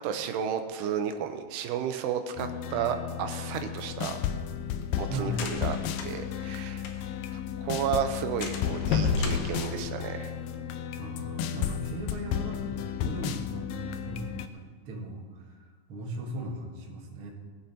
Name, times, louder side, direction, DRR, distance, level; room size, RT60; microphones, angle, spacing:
voice 1, 0.0-4.2 5.0-5.8 6.0-6.8 7.3-10.3, right 8 dB, 90° right, 7 dB, 2.8 m, -32 dB
sound 1, 2.4-14.5, left 9 dB, 90° left, 2.0 m, -33 dB
sound 2, 3.9-7.3 7.6-7.7 8.0-8.1 8.4-10.5, left 6 dB, 70° left, 2.4 m, -32 dB
voice 2, 5.1-5.5 11.0-17.3, right 2 dB, 45° right, 0 dB, 1.8 m, -38 dB
20.5 x 7.5 x 4.3 m, 1.5 s
omnidirectional pair, 4.7 m